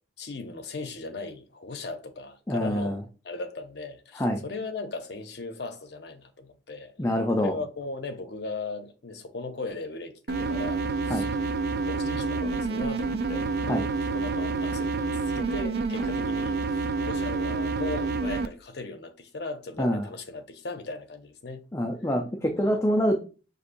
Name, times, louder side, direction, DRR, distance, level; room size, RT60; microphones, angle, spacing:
voice 1, 0.2-3.0 3.2-7.1 7.4-11.5 11.8-21.6 22.5-22.8, left 3 dB, 65° left, 0.7 m, -38 dB
voice 2, 2.5-3.0 4.1-4.4 7.0-7.6 11.1-11.3 13.7-13.9 19.8-20.1 21.7-23.2, equal, 15° left, 0.4 m, -26 dB
sound 1, 10.3-18.5, right 3 dB, 60° right, 0.3 m, -28 dB
6.3 x 2.6 x 2.6 m
head